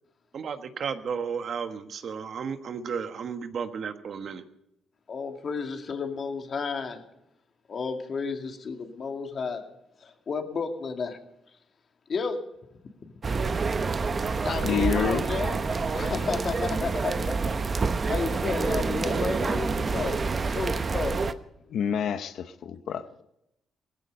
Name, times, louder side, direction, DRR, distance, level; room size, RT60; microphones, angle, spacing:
voice 1, 0.3-4.4, right 6 dB, 55° right, 1.4 m, -33 dB
voice 2, 5.1-7.0 7.7-9.7 10.0-11.2 12.1-12.4 14.3-15.6 15.9-17.4 18.1-20.2 20.5-21.2, left 5 dB, 50° left, 2.4 m, -32 dB
sound 1, 13.2-21.3, right 4 dB, 35° right, 1.0 m, -27 dB
voice 3, 14.6-15.3 19.9-20.2 21.7-23.1, left 7 dB, 70° left, 0.8 m, -28 dB
17.5 x 15.0 x 5.4 m
cardioid pair, 90°, 0 cm